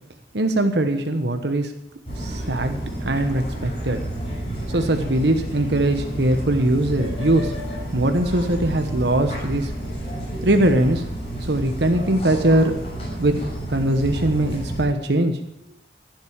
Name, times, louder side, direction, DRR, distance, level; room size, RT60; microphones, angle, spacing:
voice 1, 0.3-1.7 2.2-4.0 4.7-7.5 7.9-9.7 10.4-11.0 11.4-12.7 13.2-13.3 13.7-15.4, right 1 dB, 75° right, 6 dB, 1.2 m, -21 dB
sound 1, 2.0-14.8, right 1 dB, 35° left, 6.7 m, -30 dB
15.5 x 7.9 x 8.8 m, 0.79 s
head